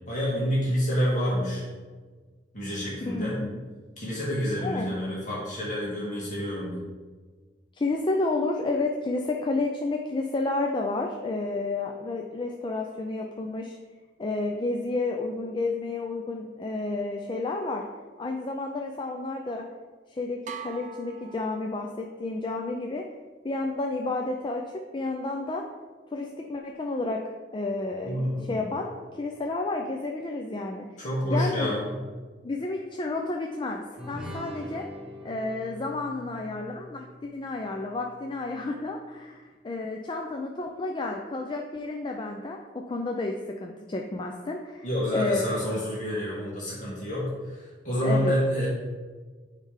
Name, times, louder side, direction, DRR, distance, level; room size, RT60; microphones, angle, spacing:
voice 1, 0.0-1.7 2.5-3.4 4.0-6.9 28.0-28.7 31.0-31.9 44.8-48.7, equal, 45° left, -6 dB, 1.8 m, -28 dB
voice 2, 3.1-3.6 4.6-4.9 7.8-13.8 14.2-17.8 18.2-19.7 20.1-23.0 23.4-25.6 26.1-27.2 27.5-31.0 31.3-31.7 32.4-34.9 35.2-42.6 42.9-45.5 48.0-48.3, left 2 dB, 30° left, 2 dB, 0.5 m, -31 dB
sound 1, 20.5-22.2, right 6 dB, 45° right, 0.6 m, -43 dB
sound 2, 34.0-38.7, left 1 dB, 5° right, 1.1 m, -43 dB
8.8 x 3.3 x 5.0 m, 1.4 s
head